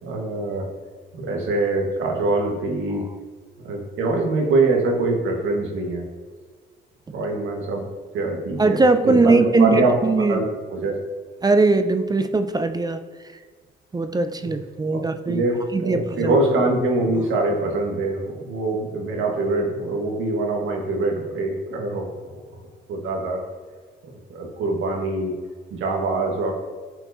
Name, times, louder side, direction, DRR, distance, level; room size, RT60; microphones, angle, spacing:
voice 1, 0.0-0.7 1.1-3.0 3.6-6.0 7.1-7.8 8.1-9.9 10.3-10.4 10.7-11.0 14.4-14.5 14.9-22.4 22.9-23.4 24.3-25.3 25.7-26.5, right 2 dB, 80° right, 1 dB, 1.5 m, -24 dB
voice 2, 8.6-10.4 11.4-13.1 13.9-15.4 15.7-16.4, right 3 dB, 20° right, 9 dB, 0.5 m, -20 dB
10.5 x 4.6 x 2.8 m, 1.5 s
cardioid pair, 90°, 20 cm